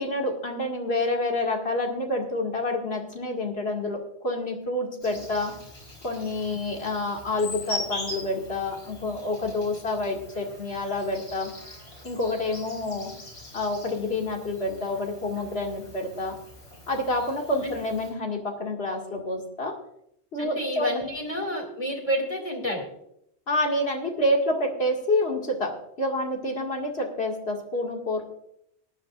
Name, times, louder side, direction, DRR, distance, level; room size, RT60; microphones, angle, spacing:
voice 1, 0.0-5.5 6.0-11.5 12.0-13.1 13.5-16.4 16.9-19.7 20.3-21.0 23.5-25.7 26.0-28.3, left 1 dB, 70° left, 0 dB, 2.4 m, -28 dB
Insect, 5.0-18.1, left 1 dB, 85° left, 4.2 m, -41 dB
voice 2, 20.4-22.9, equal, 30° left, -1 dB, 2.7 m, -29 dB
18.5 x 11.0 x 2.5 m, 0.76 s
omnidirectional pair, 1.1 m